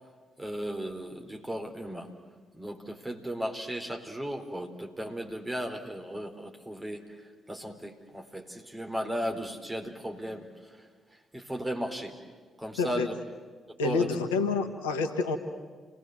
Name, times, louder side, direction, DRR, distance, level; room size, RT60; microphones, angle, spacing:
voice 1, 0.4-2.1 2.5-12.2 12.6-13.1 13.7-14.1, equal, 15° right, 3 dB, 4.0 m, -36 dB
voice 2, 13.8-15.4, left 4 dB, 75° left, 5 dB, 1.4 m, -28 dB
29.5 x 19.5 x 8.0 m, 1.5 s
figure-of-eight pair, 40°, 0 cm